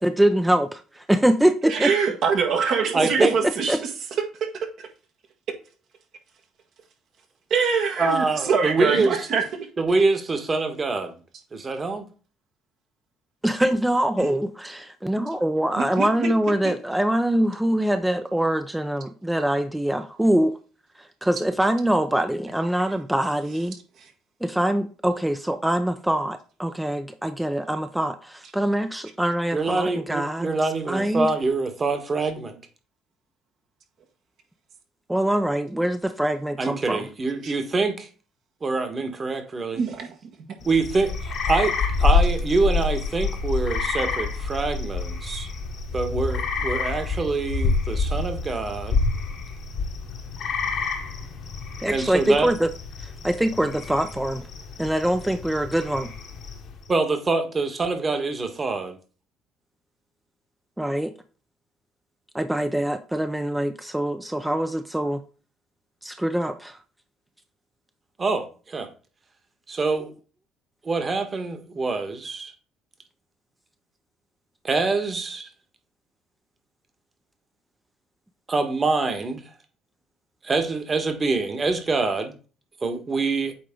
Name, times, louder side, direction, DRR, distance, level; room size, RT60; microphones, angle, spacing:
voice 1, 0.0-1.9 3.2-3.8 13.4-20.6 21.0-23.8 24.4-31.3 35.1-37.1 51.8-52.7 53.0-54.5 54.8-56.1 60.8-61.1 62.3-65.2 66.0-66.8, right 1 dB, 5° right, 0.6 m, -24 dB
voice 2, 1.7-3.9 4.4-4.5 4.8-4.9 7.5-9.7 14.2-14.4 15.8-16.3 37.4-37.5 39.7-40.1, right 6 dB, 65° right, 1.7 m, -24 dB
voice 3, 2.9-3.3 8.0-9.2 9.8-11.1 11.5-12.1 29.5-32.6 36.6-38.1 38.6-39.8 40.6-45.5 45.9-49.1 51.9-52.5 56.9-59.0 68.2-68.9 69.7-70.1 70.8-72.5 74.6-75.5 78.5-79.4 80.4-82.3 82.8-83.5, right 3 dB, 35° right, 1.6 m, -25 dB
sound 1, 40.6-56.8, left 4 dB, 60° left, 1.4 m, -27 dB
8.5 x 3.3 x 3.8 m
hypercardioid pair, 60°, 0 cm